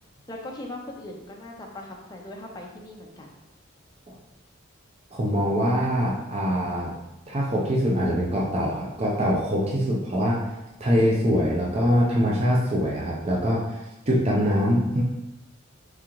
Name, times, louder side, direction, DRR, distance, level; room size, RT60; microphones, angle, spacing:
voice 1, 0.3-3.4, left 1 dB, 20° left, -1 dB, 0.6 m, -39 dB
voice 2, 5.1-6.9 7.3-10.4 10.8-15.0, equal, 30° right, -3 dB, 0.6 m, -23 dB
4.7 x 3.7 x 3.0 m, 0.96 s
head